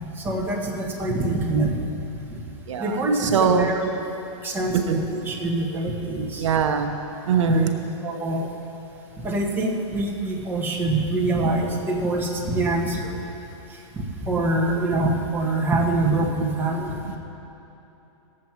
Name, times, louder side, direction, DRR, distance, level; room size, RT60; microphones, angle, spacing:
voice 1, 0.2-1.8 2.8-3.9 4.4-6.5 7.4-7.7 8.0-8.5 9.2-13.1 13.9-16.9, right 2 dB, 10° right, -2 dB, 1.4 m, -24 dB
voice 2, 2.7-3.7 4.7-5.0 6.4-7.0 7.3-7.8, right 7 dB, 75° right, 6 dB, 0.9 m, -22 dB
18.5 x 7.5 x 4.7 m, 3.0 s
hypercardioid pair, 140°, 16 cm